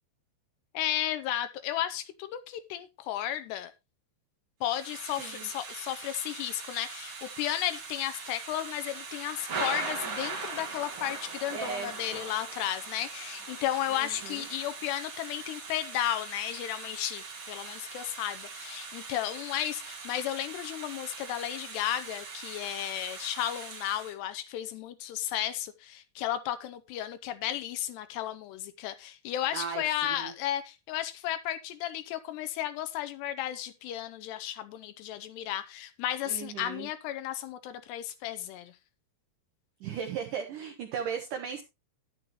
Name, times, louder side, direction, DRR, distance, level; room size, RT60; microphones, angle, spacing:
voice 1, 0.7-3.7 4.6-38.7, left 12 dB, 80° left, 2.7 m, -34 dB
Thunder / Rain, 4.6-24.1, right 4 dB, 40° right, 1.8 m, -41 dB
voice 2, 5.1-5.5 11.5-11.9 13.9-14.5 29.5-30.3 36.3-36.9 39.8-41.6, right 7 dB, 70° right, 2.0 m, -37 dB
10.5 x 10.0 x 3.0 m
omnidirectional pair, 5.2 m